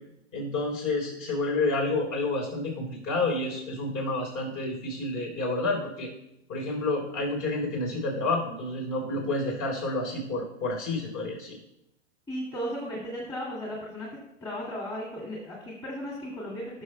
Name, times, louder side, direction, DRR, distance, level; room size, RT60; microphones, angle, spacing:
voice 1, 0.3-6.1 6.5-11.6, left 2 dB, 40° left, 0 dB, 3.6 m, -29 dB
voice 2, 12.3-14.1 14.4-16.8, equal, 10° left, -4 dB, 2.2 m, -35 dB
16.5 x 6.4 x 2.3 m, 0.84 s
hypercardioid pair, 135°, 35 cm